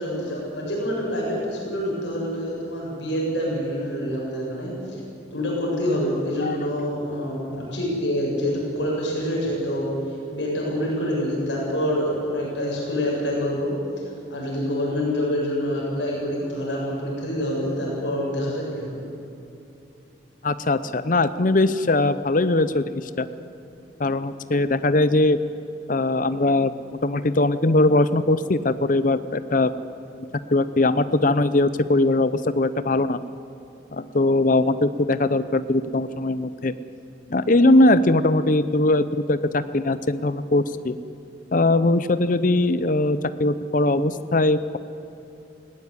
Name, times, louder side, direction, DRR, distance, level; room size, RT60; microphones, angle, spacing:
voice 1, 0.0-4.7 5.3-9.9 10.3-13.7 14.3-19.0, equal, 70° left, -3 dB, 7.7 m, -26 dB
voice 2, 20.4-23.3 24.0-25.4 25.9-26.7 27.0-29.7 30.5-33.2 33.9-36.7 37.3-41.0 41.5-44.8, left 2 dB, 45° left, 13 dB, 0.7 m, -20 dB
19.5 x 17.0 x 9.8 m, 2.8 s
head